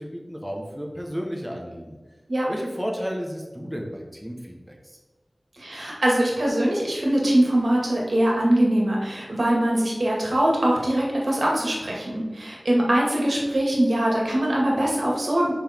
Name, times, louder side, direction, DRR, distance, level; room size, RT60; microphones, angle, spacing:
voice 1, 0.0-2.0 2.5-5.0, equal, 5° right, -1 dB, 1.3 m, -33 dB
voice 2, 5.5-15.5, right 1 dB, 70° right, -3 dB, 2.2 m, -22 dB
7.0 x 5.7 x 3.7 m, 1.3 s
wide cardioid pair, 50°, 0 cm